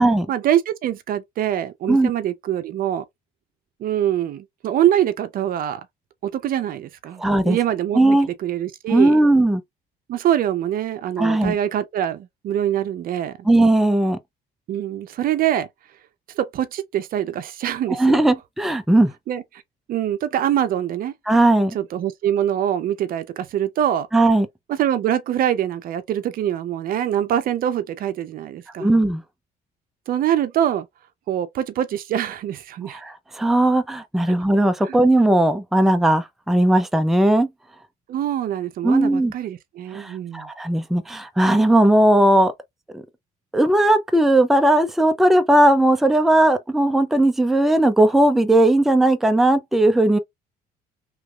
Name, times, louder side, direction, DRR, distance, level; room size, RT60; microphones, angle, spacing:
voice 1, 0.3-3.0 3.8-5.8 6.2-8.0 8.4-9.2 10.1-13.5 14.7-15.7 16.3-18.2 19.3-19.4 19.9-21.1 21.7-24.1 24.7-28.9 30.1-30.9 31.3-33.0 34.3-34.4 34.9-35.0 38.1-40.5, right 11 dB, 60° right, 0.6 m, -24 dB
voice 2, 7.2-7.6 7.9-8.3 8.9-9.6 11.2-11.6 13.4-14.2 17.9-19.1 21.3-21.8 24.1-24.5 28.8-29.2 32.9-37.5 38.8-39.3 39.9-42.5 42.9-43.0 43.5-50.2, right 1 dB, ahead, 0.5 m, -17 dB
3.3 x 3.1 x 2.3 m
cardioid pair, 110°, 17 cm